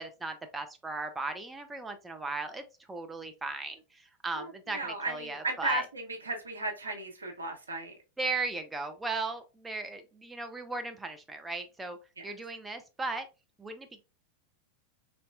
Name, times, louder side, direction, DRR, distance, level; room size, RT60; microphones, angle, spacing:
voice 1, 0.0-5.9 8.2-12.0 12.2-13.3 13.6-14.0, right 3 dB, 10° right, 7 dB, 0.4 m, -37 dB
voice 2, 4.3-7.9 12.2-12.3, right 2 dB, 75° right, 2 dB, 0.8 m, -35 dB
3.9 x 2.1 x 2.4 m, 0.29 s
figure-of-eight pair, 90°, 0 cm